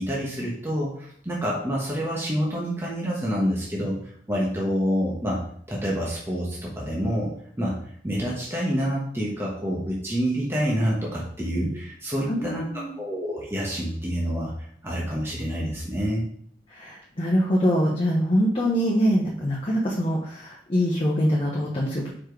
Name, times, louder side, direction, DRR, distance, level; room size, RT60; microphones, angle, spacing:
voice 1, 0.0-5.4 5.7-7.3 7.6-7.8 8.0-12.6 13.0-14.5 14.8-16.2, equal, 15° right, -4 dB, 1.1 m, -27 dB
voice 2, 12.3-12.9 16.7-22.1, equal, 30° left, -4 dB, 1.0 m, -24 dB
5.0 x 4.4 x 4.6 m, 0.63 s
head